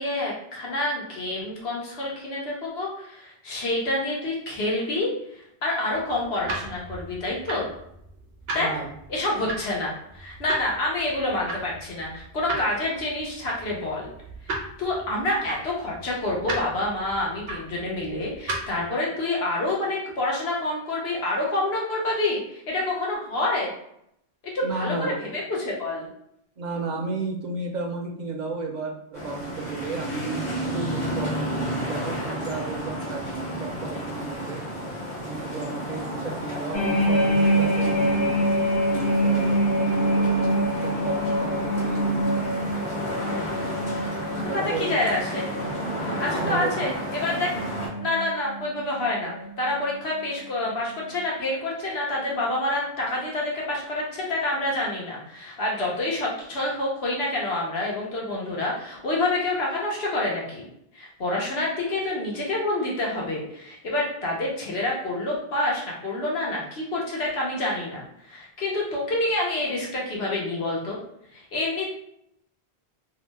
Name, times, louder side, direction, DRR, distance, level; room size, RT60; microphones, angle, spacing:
voice 1, 0.0-7.7 8.5-8.7 9.1-14.1 14.4-23.7 24.4-26.1 44.5-45.4 46.2-47.5 48.0-60.6 60.9-71.0 71.3-71.9, left 2 dB, 80° left, -3 dB, 1.1 m, -28 dB
sound 1, 5.9-18.9, right 2 dB, 75° right, 0.9 m, -37 dB
voice 2, 8.6-8.9 24.6-25.2 26.6-30.4 30.7-34.6 35.2-38.4 38.9-41.1 41.4-42.7 44.3-44.9 46.3-47.0, right 4 dB, 55° right, 2 dB, 0.5 m, -33 dB
sound 2, 29.1-47.9, equal, 50° left, 1.1 m, -32 dB
sound 3, 36.7-50.3 50.6-50.9, right 1 dB, 30° left, 0.6 m, -26 dB
2.7 x 2.0 x 3.2 m, 0.75 s
omnidirectional pair, 1.1 m